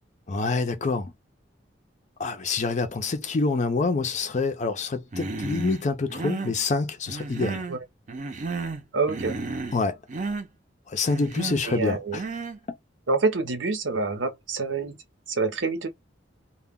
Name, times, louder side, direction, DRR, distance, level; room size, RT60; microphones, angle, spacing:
voice 1, 0.3-1.1 2.2-7.6 9.7-9.9 10.9-12.2, left 3 dB, 40° left, 0.5 m, -26 dB
Human voice, 5.1-5.8 6.1-6.6 7.1-7.8 8.1-8.8 9.1-9.8 10.1-10.5 11.1-11.6 12.1-12.6, right 3 dB, 40° right, 0.5 m, -32 dB
voice 2, 8.9-9.4 11.6-12.2 13.1-15.0 15.3-15.9, right 3 dB, 80° right, 0.8 m, -26 dB
2.2 x 2.1 x 3.5 m
head